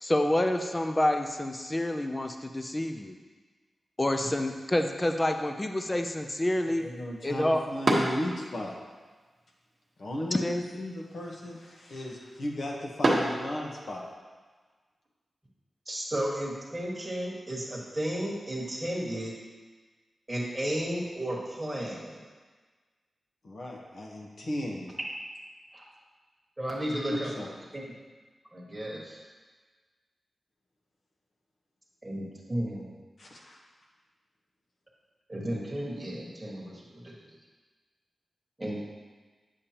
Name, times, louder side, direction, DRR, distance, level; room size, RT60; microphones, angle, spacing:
voice 1, 0.0-3.2 4.0-6.8 7.2-7.6 10.4-10.6, left 1 dB, 15° left, 5 dB, 0.4 m, -28 dB
sound 1, 4.1-14.1, right 1 dB, 35° right, 1.1 m, -35 dB
voice 2, 6.8-8.7 10.0-14.0 23.4-24.9 27.1-27.5 33.2-33.6, left 1 dB, 60° left, -2 dB, 1.1 m, -36 dB
voice 3, 15.9-19.3 20.3-22.2 25.7-25.8 26.6-27.3 27.7-27.8 28.5-29.2 32.0-32.9 35.3-37.1 38.6-38.8, right 1 dB, 10° right, -4 dB, 1.4 m, -33 dB
8.5 x 6.8 x 2.9 m, 1.4 s
wide cardioid pair, 155°, 0 cm